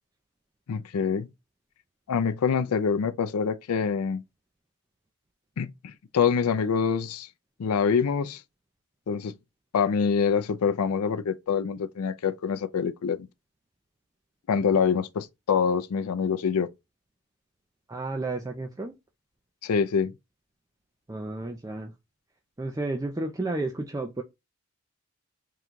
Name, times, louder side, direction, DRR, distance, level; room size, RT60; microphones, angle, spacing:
voice 1, 0.7-1.3 2.1-4.2 5.6-7.3 7.6-8.4 9.1-9.3 9.7-13.3 14.5-16.7 19.6-20.1, left 6 dB, 80° left, 0.4 m, -25 dB
voice 2, 17.9-18.9 21.1-21.9 22.6-24.2, right 2 dB, 15° right, 0.4 m, -32 dB
3.8 x 2.3 x 4.5 m
head